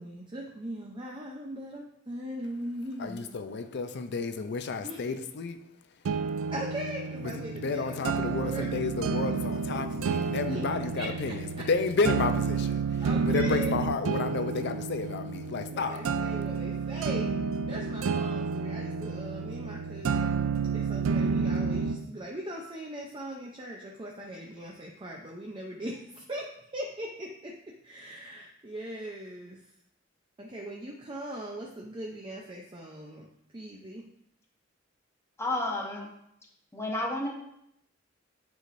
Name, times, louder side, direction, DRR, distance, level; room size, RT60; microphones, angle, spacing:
voice 1, 0.0-3.4 4.8-5.0 6.5-8.8 9.4-10.6 10.9-11.6 13.0-13.7 15.7-17.3 17.6-20.3 20.7-27.5 27.8-29.7 30.4-33.3 33.5-34.0, right 1 dB, 25° right, -1 dB, 0.6 m, -40 dB
voice 2, 3.0-5.6 7.2-16.1, left 4 dB, 60° left, 8 dB, 0.5 m, -31 dB
sound 1, 6.0-22.0, right 5 dB, 90° right, 0.4 m, -30 dB
voice 3, 35.4-36.1 36.7-37.3, left 1 dB, 15° left, -1 dB, 0.9 m, -31 dB
9.1 x 4.9 x 2.6 m, 0.76 s
head